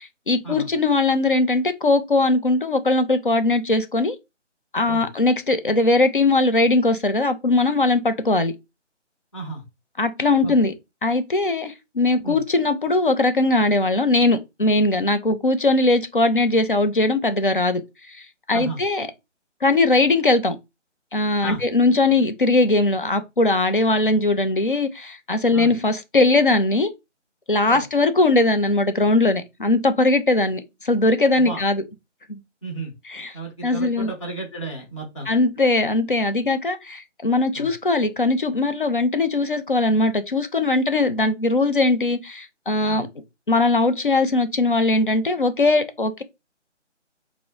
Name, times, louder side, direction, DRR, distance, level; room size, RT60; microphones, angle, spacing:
voice 1, 0.0-4.2 4.7-8.5 10.0-10.7 11.0-17.8 18.1-18.2 18.5-19.1 19.6-20.6 21.1-26.9 27.5-31.8 32.3-32.4 33.1-33.3 33.6-34.1 35.3-43.1 43.5-46.2, left 2 dB, 45° left, 0.4 m, -20 dB
voice 2, 9.3-9.6 10.4-10.5 12.2-12.4 18.5-18.8 21.4-21.6 25.5-25.7 27.6-27.8 31.4-31.6 32.6-32.9 33.3-35.3 37.5-37.7 42.8-43.0, right 3 dB, 25° left, 0.9 m, -33 dB
2.8 x 2.0 x 3.6 m
figure-of-eight pair, 150°, 36 cm